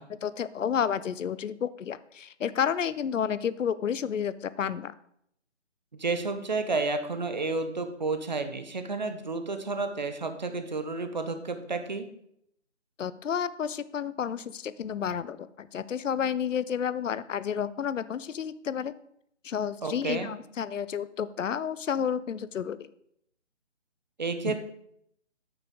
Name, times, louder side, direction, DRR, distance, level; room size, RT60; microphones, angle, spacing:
voice 1, 0.1-4.9 13.0-18.9 19.4-22.8 24.4-24.6, left 8 dB, 80° left, 16 dB, 0.6 m, -31 dB
voice 2, 5.9-12.1 19.8-20.3 24.2-24.6, right 3 dB, 35° right, 8 dB, 0.7 m, -31 dB
9.1 x 6.9 x 3.7 m, 0.72 s
hypercardioid pair, 165°, 38 cm